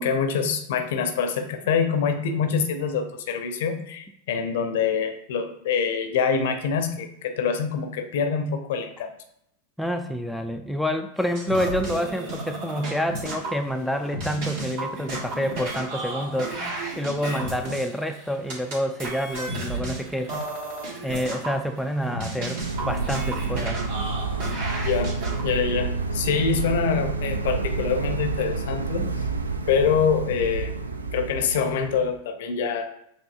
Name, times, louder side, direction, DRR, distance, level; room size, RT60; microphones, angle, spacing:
voice 1, 0.0-9.1 24.8-25.1 25.4-29.1 29.7-30.7 31.1-32.9, left 6 dB, 55° left, 7 dB, 0.6 m, -25 dB
voice 2, 9.8-16.5 17.0-20.3 21.0-23.8, equal, ahead, 4 dB, 0.3 m, -28 dB
sound 1, 11.2-13.5 13.8-18.7 19.0-25.4, right 2 dB, 55° right, 1.7 m, -33 dB
sound 2, 22.6-32.1, right 4 dB, 75° right, 0.4 m, -29 dB
7.4 x 2.7 x 2.4 m, 0.76 s
figure-of-eight pair, 90°, 0 cm